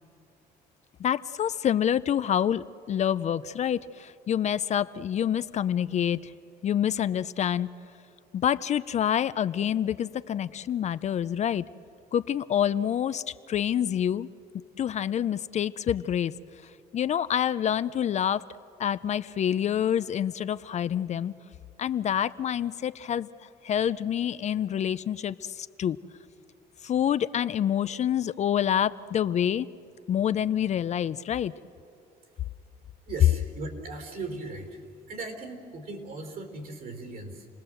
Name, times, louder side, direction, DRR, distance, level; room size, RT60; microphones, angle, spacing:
voice 1, 1.0-6.3 6.6-7.7 8.3-11.6 12.1-14.3 14.8-16.3 16.9-18.5 18.8-21.3 21.8-26.0 26.8-29.7 30.1-31.5, left 9 dB, 45° left, 15 dB, 0.5 m, -27 dB
voice 2, 33.0-34.8 35.1-37.5, right 3 dB, 60° right, 5 dB, 4.1 m, -38 dB
29.0 x 19.5 x 7.8 m, 2.6 s
cardioid pair, 110°, 17 cm